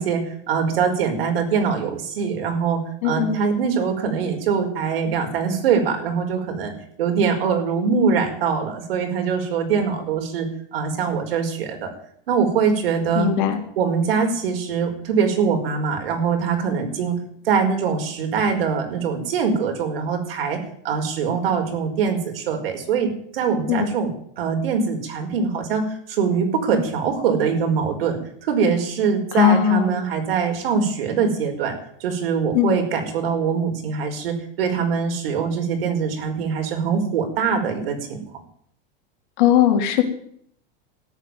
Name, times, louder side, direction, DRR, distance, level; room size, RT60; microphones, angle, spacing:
voice 1, 0.0-6.7 7.0-11.9 12.3-13.3 13.8-17.2 17.5-31.8 32.0-38.2, right 6 dB, 80° right, 4 dB, 5.2 m, -23 dB
voice 2, 3.0-3.4 13.2-13.6 23.7-23.9 29.3-30.0 32.5-32.8 39.4-40.0, left 9 dB, 50° left, 5 dB, 3.3 m, -18 dB
14.0 x 10.5 x 9.5 m, 0.66 s
supercardioid pair, 170°, 29 cm